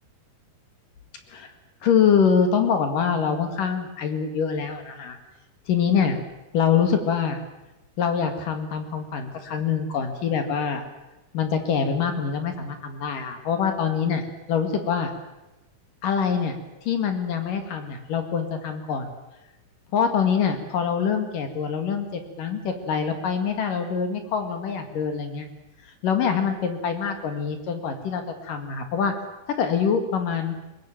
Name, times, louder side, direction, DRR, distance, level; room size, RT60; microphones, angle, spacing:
voice 1, 1.8-5.2 5.7-6.2 6.5-7.4 8.0-10.8 11.3-15.1 16.0-16.6 16.9-19.1 19.9-25.5 26.0-29.1 29.5-30.6, left 7 dB, 60° left, 6 dB, 3.4 m, -24 dB
22.5 x 19.5 x 9.0 m, 0.98 s
omnidirectional pair, 4.5 m